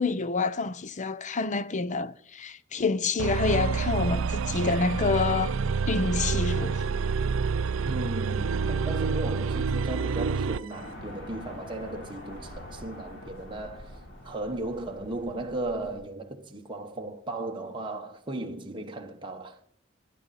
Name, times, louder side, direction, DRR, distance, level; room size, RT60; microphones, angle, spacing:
voice 1, 0.0-5.5 5.9-6.9, left 4 dB, 40° left, 0.6 m, -28 dB
sound 1, 3.2-10.7, right 5 dB, 70° right, 0.4 m, -28 dB
voice 2, 7.9-13.9 14.2-19.6, right 2 dB, 25° right, 1.1 m, -36 dB
sound 2, 10.7-16.0, left 1 dB, 65° left, 5.9 m, -45 dB
24.0 x 9.3 x 4.1 m
head